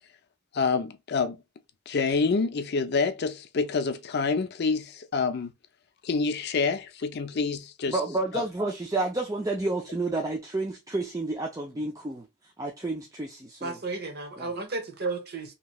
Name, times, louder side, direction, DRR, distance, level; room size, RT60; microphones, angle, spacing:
voice 1, 0.5-1.4 1.9-5.5 6.0-8.0 8.3-8.4, left 4 dB, 45° left, 0.4 m, -27 dB
voice 2, 7.9-13.8 14.4-14.5, right 2 dB, 15° right, 0.4 m, -30 dB
voice 3, 13.6-15.5, right 3 dB, 45° right, 0.8 m, -33 dB
3.1 x 2.8 x 2.2 m
head